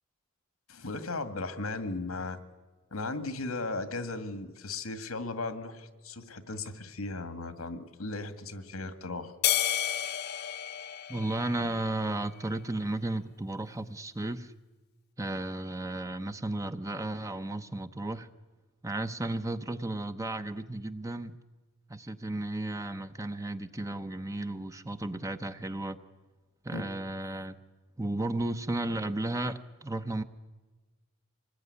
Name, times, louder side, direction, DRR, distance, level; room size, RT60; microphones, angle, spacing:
voice 1, 0.7-2.4 2.9-9.3 26.7-26.9, left 3 dB, 90° left, 10 dB, 2.0 m, -36 dB
sound 1, 9.4-12.0, left 11 dB, 50° left, 1.0 m, -31 dB
voice 2, 11.1-14.5 15.2-18.3 18.8-21.4 21.9-26.0 26.6-27.6 28.0-30.2, right 2 dB, 15° right, 9 dB, 0.8 m, -34 dB
25.5 x 20.5 x 9.7 m, 1.2 s
head